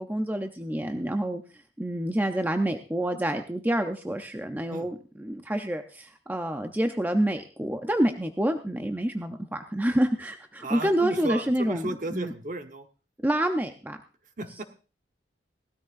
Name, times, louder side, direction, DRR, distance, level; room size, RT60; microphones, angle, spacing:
voice 1, 0.0-1.4 1.8-12.3 13.2-14.0, right 1 dB, 10° right, 6 dB, 0.5 m, -28 dB
voice 2, 10.6-12.9 14.4-14.6, right 2 dB, 40° right, 7 dB, 1.0 m, -34 dB
18.5 x 13.0 x 2.5 m, 0.36 s
head